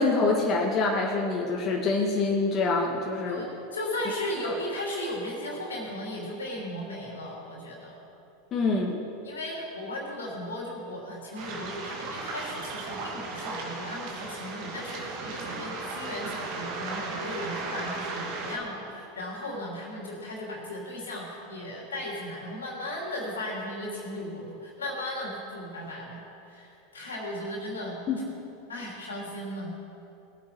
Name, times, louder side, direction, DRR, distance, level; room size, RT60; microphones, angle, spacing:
voice 1, 0.0-3.5 4.4-4.5 8.5-9.0 28.1-28.2, left 3 dB, 40° left, -1 dB, 1.7 m, -26 dB
voice 2, 3.3-8.0 9.2-28.0 28.7-29.7, left 1 dB, 85° left, -2 dB, 3.4 m, -36 dB
Waves surf, 11.4-18.6, right 3 dB, 55° right, 2.4 m, -36 dB
19.5 x 8.3 x 4.7 m, 2.8 s
hypercardioid pair, 90°, 0 cm